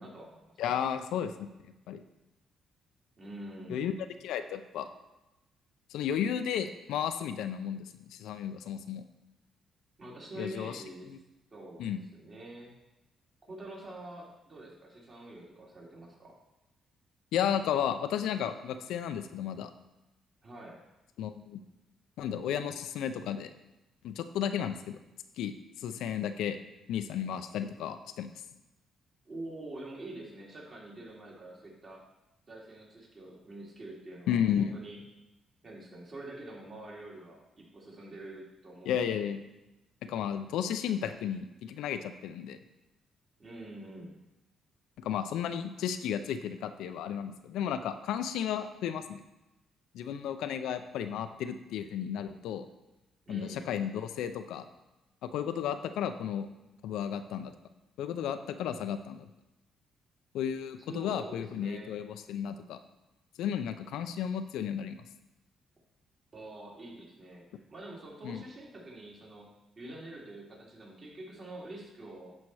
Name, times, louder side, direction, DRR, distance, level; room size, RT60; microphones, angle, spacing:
voice 1, 0.0-0.8 3.2-3.8 10.0-11.1 11.5-12.7 13.5-16.4 20.4-20.8 29.2-32.0 32.5-35.0 35.6-39.2 43.4-44.2 53.2-53.7 60.9-61.9 66.3-69.5 69.8-72.4, right 1 dB, 45° right, -4 dB, 3.0 m, -46 dB
voice 2, 0.6-1.3 1.9-2.0 3.7-3.9 4.2-4.9 5.9-9.0 10.4-10.8 11.1-11.2 11.8-12.0 17.3-19.7 21.2-21.6 22.2-23.5 24.0-25.0 25.4-26.6 26.9-28.3 34.3-34.7 38.9-39.4 40.0-42.6 45.0-49.2 49.9-52.7 53.3-54.7 55.2-56.5 56.8-57.5 58.0-59.3 60.3-62.8 63.4-65.0 68.2-68.4, left 9 dB, 85° left, 9 dB, 0.5 m, -33 dB
11.0 x 4.2 x 4.8 m, 0.99 s
cardioid pair, 90°, 0 cm